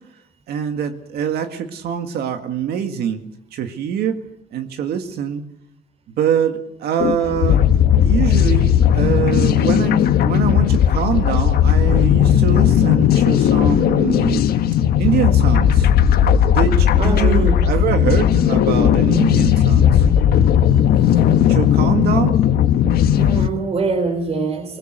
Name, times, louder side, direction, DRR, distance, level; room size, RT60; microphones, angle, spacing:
voice 1, 0.5-3.2 3.5-4.2 4.5-5.4 6.2-7.6 8.0-14.4 15.0-15.9 16.5-20.0 21.5-22.4, right 8 dB, 70° right, 7 dB, 1.9 m, -24 dB
sound 1, 7.0-23.5, left 9 dB, 65° left, 1.5 m, -15 dB
voice 2, 17.0-17.7 22.2-22.3 23.2-24.8, right 3 dB, 35° right, 5 dB, 4.3 m, -24 dB
22.5 x 20.5 x 6.6 m, 0.81 s
cardioid pair, 110°, 17 cm